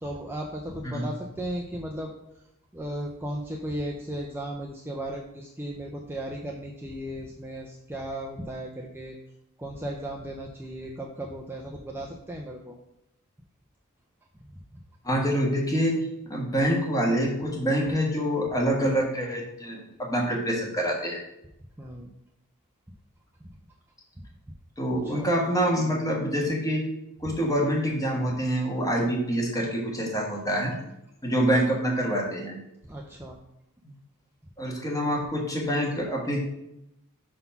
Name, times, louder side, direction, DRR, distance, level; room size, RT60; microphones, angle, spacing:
voice 1, 0.0-2.1 2.7-9.2 9.6-12.7 14.4-14.5 21.8-22.1 23.4-23.5 24.2-24.3 25.0-25.3 32.9-33.4, right 1 dB, 10° right, -1 dB, 0.5 m, -36 dB
voice 2, 15.0-16.0 16.3-21.2 24.8-26.9 27.2-30.8 31.2-32.6 34.6-36.4, equal, 15° left, 0 dB, 1.3 m, -26 dB
5.4 x 4.0 x 5.8 m, 0.84 s
head